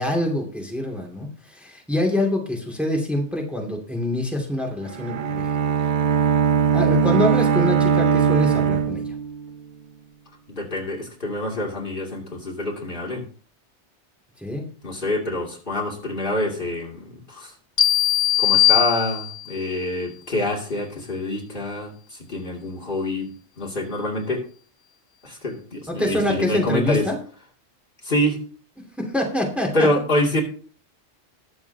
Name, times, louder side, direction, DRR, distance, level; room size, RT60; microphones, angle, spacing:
voice 1, 0.0-5.5 6.7-9.1 14.4-14.6 25.9-27.2 29.0-29.9, left 1 dB, ahead, 1 dB, 2.3 m, -25 dB
Bowed string instrument, 4.9-9.6, right 7 dB, 50° right, 0.7 m, -20 dB
voice 2, 10.5-13.2 14.8-17.5 18.4-23.3 23.6-24.4 25.2-27.1 28.0-28.4 29.7-30.4, left 1 dB, 50° left, -2 dB, 2.7 m, -26 dB
sound 1, 17.8-19.6, left 13 dB, 35° left, 0.7 m, -19 dB
20.5 x 7.0 x 2.8 m, 0.42 s
omnidirectional pair, 1.2 m